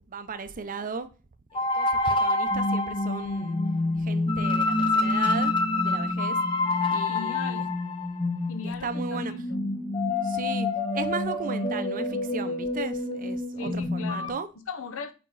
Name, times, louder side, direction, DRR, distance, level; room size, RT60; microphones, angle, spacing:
voice 1, 0.1-1.1 1.5-3.6 4.0-6.4 6.9-7.7 8.6-9.3 10.2-10.7 10.9-14.5, right 4 dB, 40° right, 0.6 m, -36 dB
sound 1, 1.5-14.3, left 2 dB, 25° left, 0.7 m, -27 dB
voice 2, 7.1-7.7 8.5-9.7 13.6-14.3 14.7-15.1, left 5 dB, 65° left, 0.8 m, -38 dB
5.0 x 4.7 x 4.0 m
head